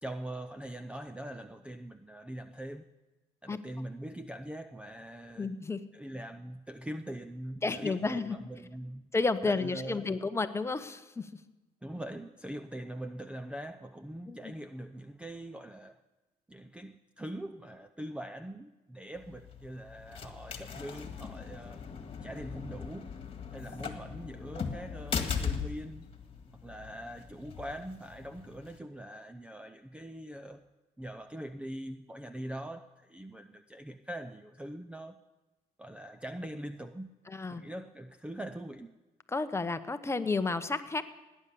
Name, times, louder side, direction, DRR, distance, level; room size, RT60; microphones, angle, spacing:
voice 1, 0.0-2.9 3.4-5.5 5.9-9.1 9.5-10.2 11.8-16.0 16.5-21.9 22.2-23.2 23.5-26.0 26.6-30.6 31.0-35.2 35.8-37.1 37.5-38.9, right 1 dB, 5° right, 8 dB, 0.6 m, -42 dB
voice 2, 5.4-5.8 7.6-8.4 9.1-11.3 14.3-14.5 37.3-37.6 39.3-41.0, left 3 dB, 15° left, 10 dB, 0.9 m, -31 dB
sound 1, 19.2-28.8, left 6 dB, 35° left, 1.9 m, -39 dB
18.0 x 10.0 x 6.9 m, 1.1 s
cardioid pair, 110°, 17 cm